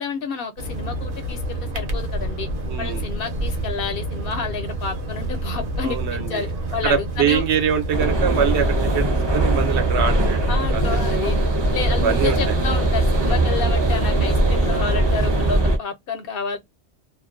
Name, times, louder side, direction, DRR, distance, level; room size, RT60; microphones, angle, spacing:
voice 1, 0.0-2.5 2.8-7.4 10.5-11.4 11.7-16.6, left 5 dB, 60° left, 0.8 m, -30 dB
sound 1, 0.6-15.4, right 1 dB, 55° right, 0.8 m, -28 dB
voice 2, 2.7-3.0 5.8-6.5 6.8-8.7 8.9-9.1 9.3-11.0 11.9-12.6, right 8 dB, 80° right, 1.0 m, -23 dB
sound 2, 7.9-15.8, right 2 dB, 30° right, 0.5 m, -21 dB
2.5 x 2.1 x 2.4 m
omnidirectional pair, 1.1 m